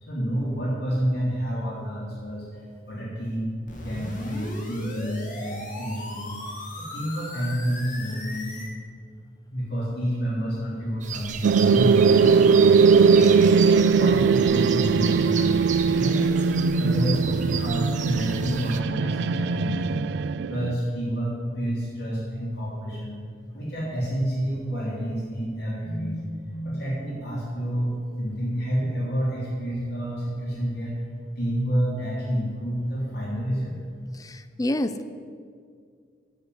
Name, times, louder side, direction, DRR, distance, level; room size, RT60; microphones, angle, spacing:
voice 1, 0.0-3.5 3.8-6.4 6.8-8.6 9.5-13.4 13.8-15.5 15.9-20.1 20.5-23.2 23.5-27.9 28.2-30.9 31.4-33.8, equal, 65° left, -6 dB, 3.1 m, -29 dB
sound 1, 3.7-8.7, left 1 dB, 45° left, 1.8 m, -37 dB
sound 2, 11.0-18.8, right 8 dB, 45° right, 0.7 m, -35 dB
sound 3, 11.4-20.7, right 5 dB, 70° right, 0.3 m, -20 dB
voice 2, 34.1-35.1, left 1 dB, 20° left, 12 dB, 0.5 m, -28 dB
9.5 x 7.6 x 7.6 m, 2.1 s
head